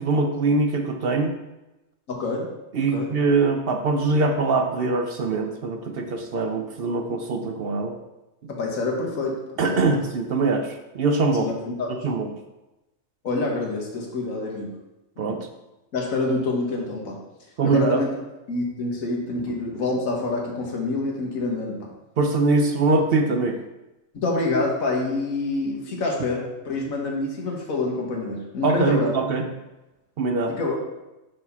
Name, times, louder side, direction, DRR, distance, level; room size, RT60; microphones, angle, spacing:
voice 1, 0.0-1.3 2.7-7.9 9.6-11.5 12.0-12.3 15.2-15.5 17.6-18.0 22.2-23.6 28.6-29.5 30.2-30.5, right 3 dB, 60° right, 4 dB, 0.7 m, -22 dB
voice 2, 2.1-2.5 2.7-3.1 8.5-10.0 11.4-11.9 13.2-14.7 15.2-15.4 15.9-17.2 17.6-18.1 18.5-21.9 24.1-29.1 30.5-30.8, left 2 dB, 90° left, -1 dB, 1.7 m, -27 dB
4.9 x 4.0 x 5.7 m, 1.0 s
omnidirectional pair, 1.4 m